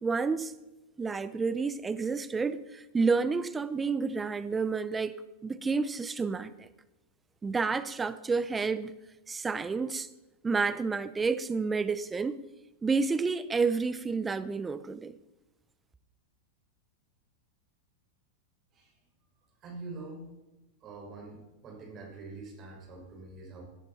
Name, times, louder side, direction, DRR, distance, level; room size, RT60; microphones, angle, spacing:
voice 1, 0.0-0.5 1.0-6.7 7.4-8.9 9.3-10.1 10.4-12.4 12.8-15.2, right 4 dB, 15° right, 0.9 m, -30 dB
voice 2, 19.6-20.3 20.8-23.6, right 3 dB, 35° right, 5.8 m, -45 dB
17.5 x 11.5 x 4.4 m
hypercardioid pair, 95°, 0 cm